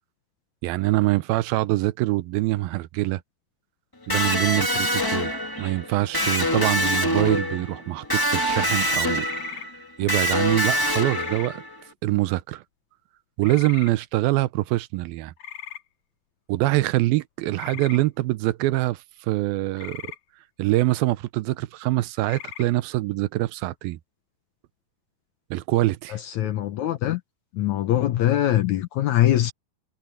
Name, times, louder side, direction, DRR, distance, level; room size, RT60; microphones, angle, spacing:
voice 1, 0.6-3.2 4.1-5.3 5.6-9.3 10.0-11.6 12.0-12.6 13.4-15.3 16.5-20.1 20.6-24.0 25.5-26.2, right 17 dB, 80° right, 2.5 m, -24 dB
Electric guitar, 4.1-11.8, equal, 35° left, 0.3 m, -25 dB
sound 1, 9.2-9.7 11.0-11.5 13.4-13.9 15.4-15.8 17.5-18.0 19.8-20.2 22.2-22.7, left 10 dB, 50° left, 2.9 m, -38 dB
voice 2, 26.4-27.2 27.5-29.5, left 12 dB, 70° left, 1.8 m, -22 dB
omnidirectional pair, 4.2 m